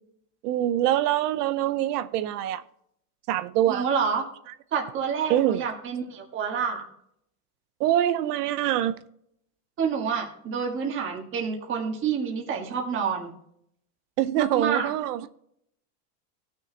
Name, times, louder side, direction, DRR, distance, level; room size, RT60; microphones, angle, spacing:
voice 1, 0.4-2.6 3.3-3.9 5.3-5.6 7.8-9.0 14.2-15.3, right 12 dB, 85° right, 0.8 m, -24 dB
voice 2, 3.7-4.2 4.7-6.9 9.8-13.3 14.4-14.9, right 6 dB, 25° right, 1.5 m, -28 dB
16.5 x 6.4 x 2.8 m
supercardioid pair, 155°, 46 cm